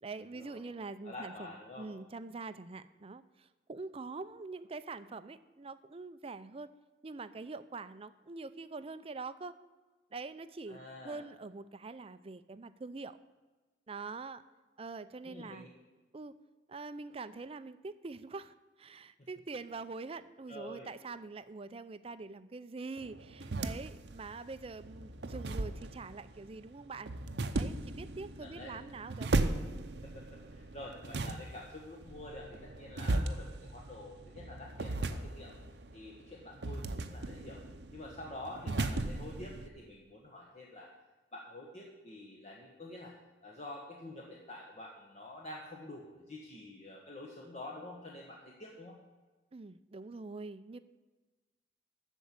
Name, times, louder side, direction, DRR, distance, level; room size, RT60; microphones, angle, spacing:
voice 1, 0.0-6.7 7.0-9.6 10.1-13.2 13.9-14.4 14.8-15.7 16.1-16.3 16.7-27.1 27.5-29.3 49.5-50.8, right 3 dB, 35° right, 13 dB, 0.5 m, -44 dB
voice 2, 1.0-1.9 10.7-11.2 15.2-15.7 20.5-20.9 28.4-28.8 30.0-35.5 35.9-37.6 37.9-40.9 41.3-43.1 43.4-49.0, left 1 dB, 40° left, -2 dB, 1.4 m, -47 dB
sound 1, 23.0-39.7, right 2 dB, 75° right, 0.7 m, -37 dB
13.0 x 4.6 x 8.4 m, 1.2 s
head